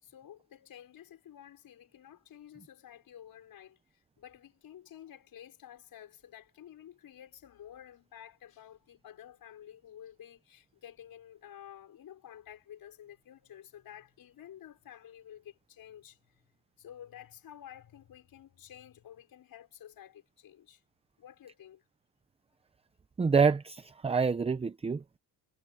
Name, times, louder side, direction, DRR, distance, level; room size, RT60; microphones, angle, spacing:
voice 1, 0.0-16.4 16.8-20.8 21.2-21.8, left 10 dB, 55° left, 5.4 m, -51 dB
voice 2, 23.2-25.2, right 5 dB, 15° right, 0.5 m, -27 dB
cardioid pair, 130°, 41 cm